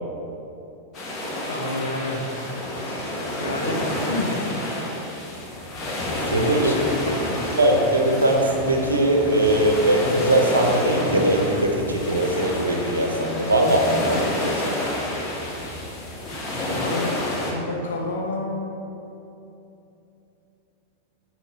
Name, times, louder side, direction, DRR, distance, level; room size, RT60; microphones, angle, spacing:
sound 1, 0.9-17.5, left 1 dB, 30° left, 1.5 m, -29 dB
voice 1, 1.5-2.2 2.8-4.4 6.3-7.4 16.5-18.8, left 2 dB, 65° left, 0 dB, 1.1 m, -30 dB
voice 2, 6.3-6.8 7.6-14.9, right 1 dB, 75° right, 1 dB, 0.9 m, -21 dB
8.3 x 3.2 x 5.4 m, 2.8 s
figure-of-eight pair, 90°, 0 cm